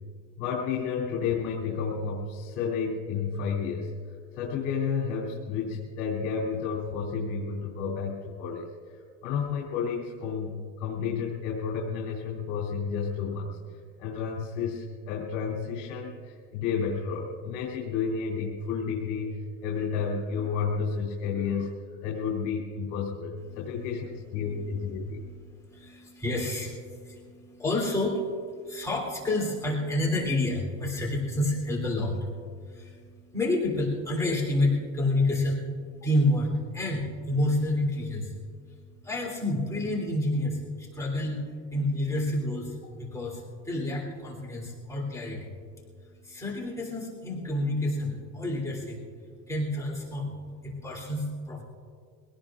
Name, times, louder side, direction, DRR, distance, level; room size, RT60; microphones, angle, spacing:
voice 1, 0.4-3.9 4.3-25.2, left 6 dB, 65° left, -4 dB, 3.1 m, -31 dB
voice 2, 25.1-38.4 38.7-38.8 39.0-45.5 46.2-49.0 49.5-50.3 50.6-51.6, left 1 dB, 10° left, -5 dB, 3.1 m, -29 dB
24.0 x 18.0 x 2.5 m, 2.1 s
cardioid pair, 135°, 35 cm